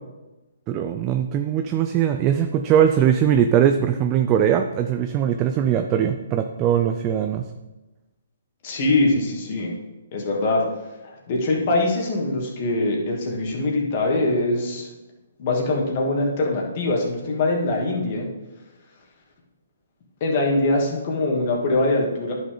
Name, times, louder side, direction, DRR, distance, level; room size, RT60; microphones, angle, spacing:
voice 1, 0.7-7.5, right 9 dB, 25° right, 6 dB, 0.5 m, -20 dB
voice 2, 8.6-9.7 10.1-10.7 11.0-14.9 15.4-18.3 20.2-22.3, left 2 dB, 45° left, -1 dB, 2.4 m, -23 dB
10.5 x 6.2 x 3.9 m, 1.1 s
hypercardioid pair, 140°, 0 cm